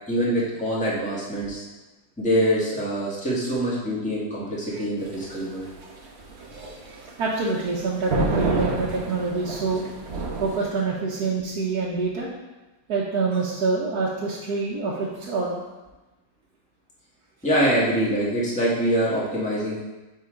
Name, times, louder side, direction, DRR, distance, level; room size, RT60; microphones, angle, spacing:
voice 1, 0.1-1.6 2.2-5.7 17.4-19.8, equal, 5° left, -7 dB, 1.4 m, -24 dB
sound 1, 5.0-10.6, right 2 dB, 50° right, 1.0 m, -29 dB
voice 2, 6.4-9.8 10.4-12.3 12.9-15.6, right 4 dB, 65° right, -5 dB, 1.3 m, -26 dB
5.6 x 4.3 x 5.0 m, 1.1 s
omnidirectional pair, 1.8 m